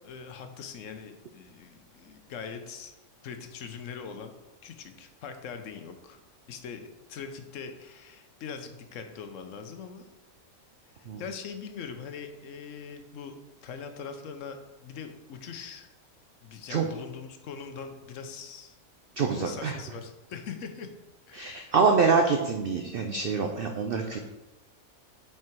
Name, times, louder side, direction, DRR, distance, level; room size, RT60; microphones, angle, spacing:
voice 1, 0.0-2.9 3.2-4.3 4.6-6.2 6.5-10.0 10.9-13.3 13.6-15.9 16.4-18.8 19.3-20.9 21.3-21.7, left 6 dB, 65° left, 7 dB, 1.0 m, -42 dB
voice 2, 19.2-19.8 21.3-24.2, right 5 dB, 60° right, 3 dB, 0.6 m, -25 dB
6.0 x 4.7 x 4.5 m, 1.0 s
omnidirectional pair, 1.5 m